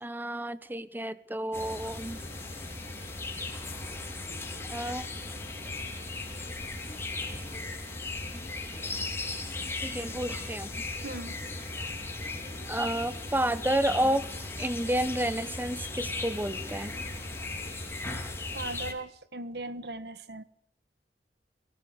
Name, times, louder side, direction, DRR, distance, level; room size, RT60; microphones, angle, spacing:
voice 1, 0.0-2.2 4.7-5.1 9.8-10.8 12.7-14.3 14.6-17.0, right 1 dB, 10° right, 13 dB, 1.2 m, -30 dB
sound 1, 1.5-18.9, left 2 dB, 15° left, 5.3 m, -37 dB
sound 2, 1.6-18.9, left 3 dB, 35° left, 4.9 m, -50 dB
voice 2, 11.0-11.4 18.5-20.4, right 2 dB, 65° right, 12 dB, 1.5 m, -38 dB
23.0 x 19.0 x 6.8 m, 0.64 s
head